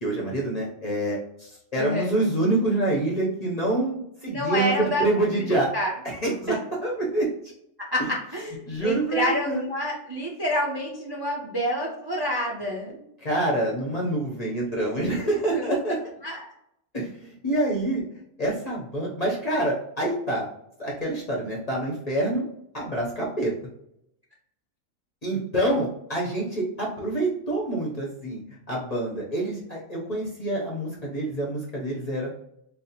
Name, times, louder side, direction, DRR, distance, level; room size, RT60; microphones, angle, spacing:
voice 1, 0.0-5.7 6.0-7.3 8.7-9.6 13.2-16.0 16.9-18.0 18.4-20.5 20.8-22.5 22.7-23.5 25.2-28.4 28.7-32.3, right 1 dB, 40° left, -4 dB, 0.6 m, -26 dB
voice 2, 1.8-2.1 4.2-5.0 5.4-5.9 6.5-6.6 7.9-13.0 15.5-15.8 16.2-16.5, equal, 40° right, -3 dB, 0.3 m, -28 dB
4.1 x 2.0 x 2.8 m, 0.77 s
omnidirectional pair, 1.5 m